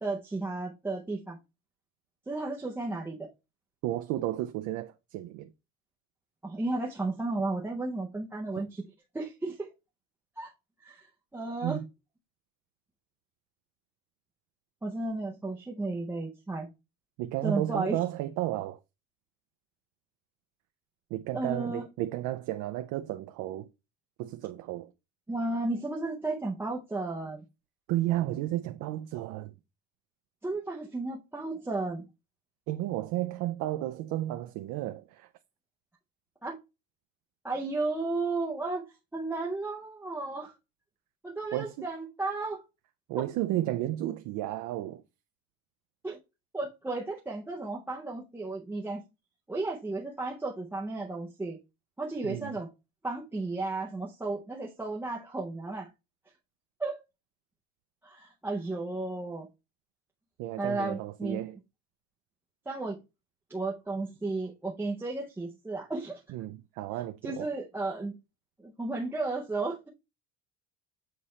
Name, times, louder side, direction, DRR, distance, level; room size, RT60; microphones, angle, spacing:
voice 1, 0.0-1.4 2.3-3.3 6.4-8.8 9.1-9.7 10.4-10.5 10.8-11.1 11.3-11.8 14.8-16.7 17.4-18.0 21.3-21.8 25.3-27.4 30.4-32.0 36.4-36.6 37.4-38.8 39.1-40.5 41.2-42.6 43.1-43.2 46.0-46.2 46.5-49.0 49.5-51.6 52.0-52.7 53.0-55.9 56.8-57.0 58.0-59.5 60.6-61.4 62.7-63.0 63.5-66.2 67.2-68.2 68.6-69.9, right 3 dB, 5° right, 0.5 m, -33 dB
voice 2, 3.8-5.5 11.6-11.8 17.2-18.8 21.1-23.7 24.2-24.9 27.9-29.5 32.7-35.3 41.5-41.9 43.1-45.0 52.2-52.5 60.4-61.6 66.3-67.5, right 14 dB, 55° right, 0.5 m, -33 dB
7.7 x 4.1 x 3.2 m
cardioid pair, 160°, 37 cm